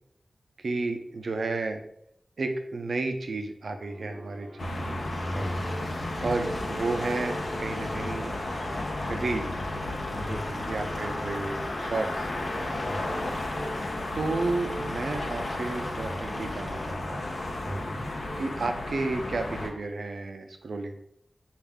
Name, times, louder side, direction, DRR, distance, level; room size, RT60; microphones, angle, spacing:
voice 1, 0.6-1.8 2.4-5.0 6.2-8.3 9.1-9.5 10.7-12.3 14.1-17.3 18.4-21.0, right 3 dB, 80° right, 6 dB, 0.4 m, -32 dB
sound 1, 3.7-18.5, right 1 dB, 60° right, 0.8 m, -44 dB
sound 2, 4.6-19.7, left 2 dB, 75° left, 0.6 m, -33 dB
sound 3, 5.1-16.9, equal, 5° right, 0.4 m, -46 dB
voice 2, 5.3-5.7 10.1-10.9 12.7-13.1 17.6-18.0, equal, 15° left, -1 dB, 0.8 m, -37 dB
4.3 x 2.4 x 3.5 m, 0.73 s
wide cardioid pair, 85°, 0 cm